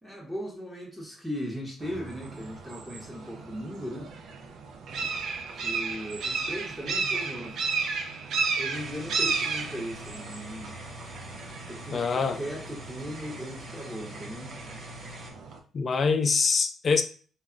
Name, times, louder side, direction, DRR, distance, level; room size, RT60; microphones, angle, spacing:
voice 1, 0.0-4.1 5.5-7.8 8.6-10.8 11.7-14.6, equal, 5° right, 0.8 m, -38 dB
sound 1, 1.8-15.6, right 4 dB, 70° right, 0.4 m, -34 dB
sound 2, 8.7-15.3, equal, 50° right, 0.8 m, -44 dB
voice 2, 11.9-12.4 15.7-17.0, left 5 dB, 45° left, 0.4 m, -24 dB
2.2 x 2.0 x 3.6 m
cardioid pair, 90°, 0 cm